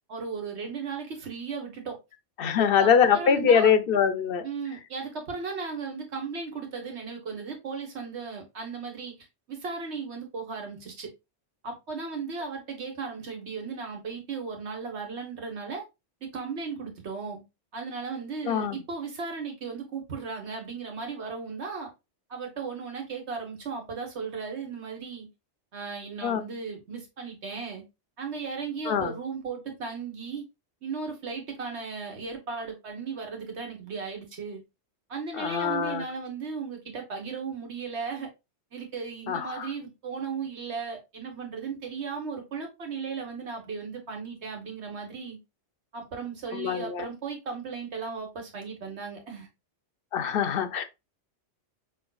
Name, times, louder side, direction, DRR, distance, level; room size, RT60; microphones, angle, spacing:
voice 1, 0.1-2.0 2.4-3.7 4.4-9.1 9.5-11.1 11.6-15.8 16.2-17.4 17.7-21.9 22.3-25.3 25.7-27.8 28.2-30.4 30.8-34.6 35.1-38.3 38.7-45.4 45.9-49.5, right 5 dB, 70° right, 1.6 m, -36 dB
voice 2, 2.4-4.4 18.5-18.8 26.2-26.4 28.9-29.1 35.4-36.0 39.3-39.7 46.6-47.0 50.1-50.8, left 7 dB, 60° left, 0.7 m, -23 dB
5.4 x 3.4 x 2.3 m
omnidirectional pair, 1.2 m